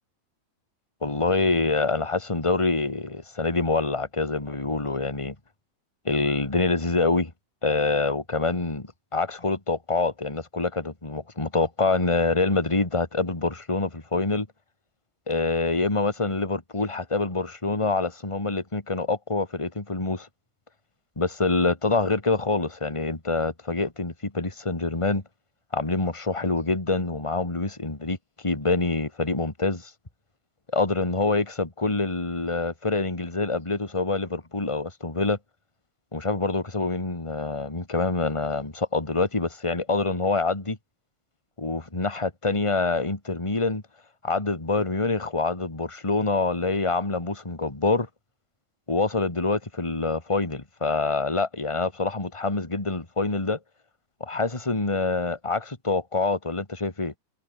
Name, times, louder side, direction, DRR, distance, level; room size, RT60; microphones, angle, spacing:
voice 1, 1.0-5.3 6.0-7.3 7.6-14.5 15.3-20.3 21.2-25.2 25.7-28.2 28.4-29.9 30.7-35.4 36.1-40.8 41.6-43.8 44.2-48.1 48.9-53.6 54.2-57.1, left 3 dB, 10° left, 2.6 m, -26 dB
omnidirectional pair, 4.3 m